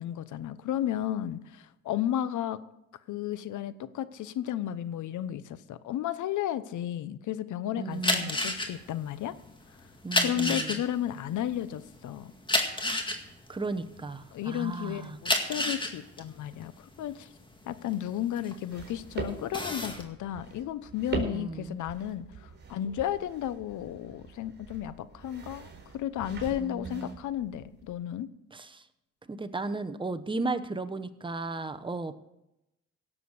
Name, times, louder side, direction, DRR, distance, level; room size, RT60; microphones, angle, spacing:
voice 1, 0.0-2.6 3.1-9.3 9.7-9.8 10.2-12.3 14.3-17.3 17.7-28.3, left 11 dB, 75° left, 15 dB, 0.9 m, -33 dB
voice 2, 7.8-8.3 10.0-10.8 13.5-15.2 21.3-21.8 26.6-27.2 28.5-28.8 29.3-32.1, right 3 dB, 15° right, 9 dB, 1.0 m, -35 dB
sound 1, 7.9-14.5 15.0-18.9 19.3-20.0, left 1 dB, 15° left, 2.0 m, -30 dB
sound 2, 18.7-28.0, right 4 dB, 35° right, 4.4 m, -42 dB
17.0 x 7.3 x 6.6 m, 0.88 s
cardioid pair, 90°, 30 cm